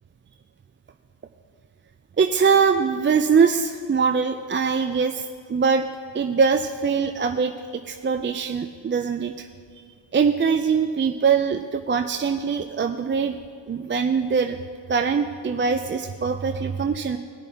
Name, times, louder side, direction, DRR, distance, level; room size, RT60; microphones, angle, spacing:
voice 1, 2.2-5.8 6.1-7.5 7.9-9.5 10.1-13.4 13.7-14.6 14.9-17.2, right 6 dB, 25° right, 6 dB, 0.4 m, -22 dB
20.0 x 6.9 x 2.8 m, 2.1 s
cardioid pair, 65°, 48 cm